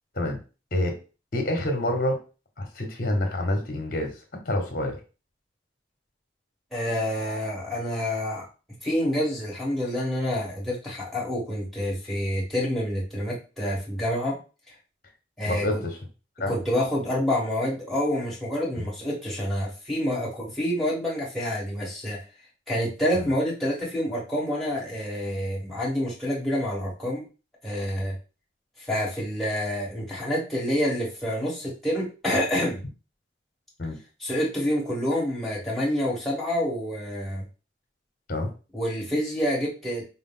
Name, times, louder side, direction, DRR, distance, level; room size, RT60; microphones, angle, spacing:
voice 1, 1.3-2.2 2.6-4.1 4.4-5.0 15.5-16.0 16.4-16.5 18.8-18.9 23.1-23.3 33.8-34.0 38.3-38.5, left 1 dB, 50° left, 3 dB, 1.0 m, -27 dB
voice 2, 6.7-8.5 8.8-14.4 15.4-15.8 16.5-22.2 22.7-27.3 27.6-28.1 28.8-32.8 34.2-37.4 38.7-40.0, equal, ahead, -6 dB, 1.3 m, -27 dB
5.0 x 2.0 x 3.7 m, 0.33 s
head